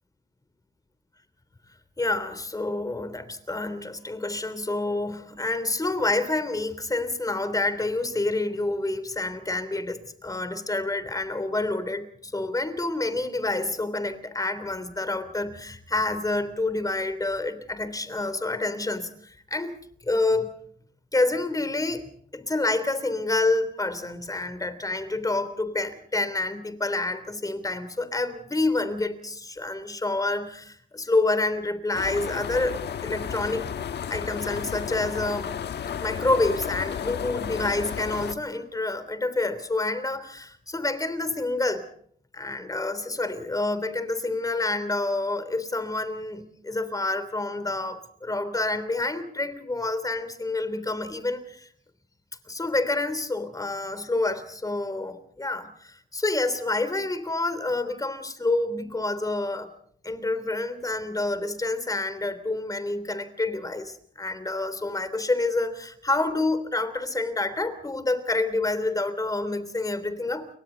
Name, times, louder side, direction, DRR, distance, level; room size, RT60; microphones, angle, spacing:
voice 1, 2.0-19.7 20.0-20.5 21.1-33.7 34.1-35.5 36.0-41.8 42.3-51.7 52.5-59.7 60.0-70.5, left 2 dB, 15° left, 3.3 m, -28 dB
sound 1, 31.9-38.3, left 8 dB, 60° left, 1.4 m, -32 dB
30.0 x 23.0 x 4.0 m
cardioid pair, 90°, 20 cm